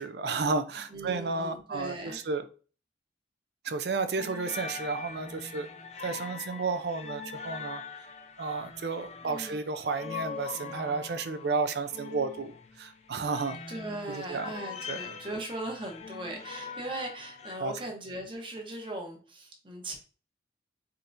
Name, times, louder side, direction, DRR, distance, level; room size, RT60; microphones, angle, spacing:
voice 1, 0.0-2.4 3.6-5.7 6.0-7.8 8.4-12.5 12.8-13.6 14.3-14.5 14.9-15.0 17.6-17.7, right 4 dB, 65° right, 10 dB, 0.5 m, -32 dB
voice 2, 0.9-2.2 9.2-9.6 13.7-20.0, right 1 dB, 30° right, 2 dB, 1.0 m, -39 dB
sound 1, 4.2-17.6, left 5 dB, 35° left, 0.5 m, -42 dB
4.3 x 3.7 x 2.6 m, 0.37 s
head